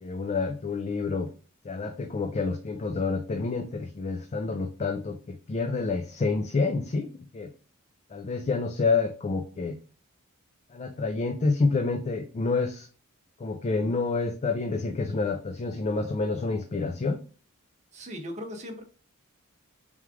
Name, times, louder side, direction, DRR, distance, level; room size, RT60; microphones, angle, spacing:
voice 1, 0.0-1.3 1.6-7.5 8.1-9.8 10.7-12.9 13.4-17.2, left 3 dB, 30° left, 6 dB, 0.4 m, -28 dB
voice 2, 17.9-18.8, equal, 30° right, 4 dB, 0.9 m, -38 dB
3.6 x 3.2 x 3.4 m, 0.38 s
head